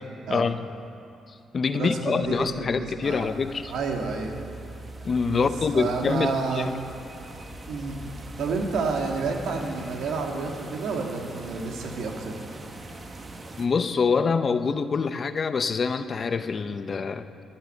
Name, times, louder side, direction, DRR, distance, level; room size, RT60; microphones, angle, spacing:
voice 1, 0.3-0.7 1.5-3.7 5.0-6.7 13.6-17.3, left 5 dB, 40° left, 11 dB, 0.6 m, -25 dB
voice 2, 1.7-3.3 3.7-4.4 5.3-5.5 5.7-6.7 7.7-8.0 8.4-12.5, right 4 dB, 75° right, 2 dB, 1.8 m, -30 dB
sound 1, 2.2-9.7, equal, 10° left, 1.9 m, -45 dB
sound 2, 3.0-13.7, right 2 dB, 30° right, 1.2 m, -44 dB
13.5 x 9.3 x 6.6 m, 2.7 s
cardioid pair, 90°, 0 cm